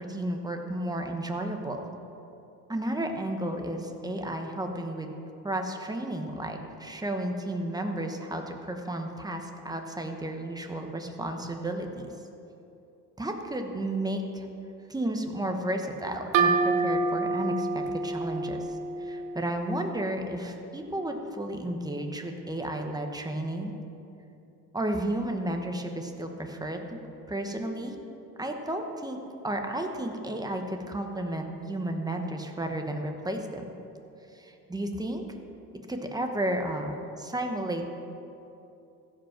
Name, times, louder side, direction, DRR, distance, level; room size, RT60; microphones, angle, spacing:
voice 1, 0.0-1.9 2.7-5.1 5.4-12.1 13.2-14.5 14.9-18.6 19.0-23.7 24.7-27.0 27.3-28.0 28.4-33.6 34.3-35.2 35.9-37.9, right 1 dB, 10° right, 4 dB, 1.1 m, -32 dB
sound 1, 16.3-19.9, right 3 dB, 65° right, 1.2 m, -27 dB
15.0 x 5.3 x 5.9 m, 2.8 s
cardioid pair, 105°, 34 cm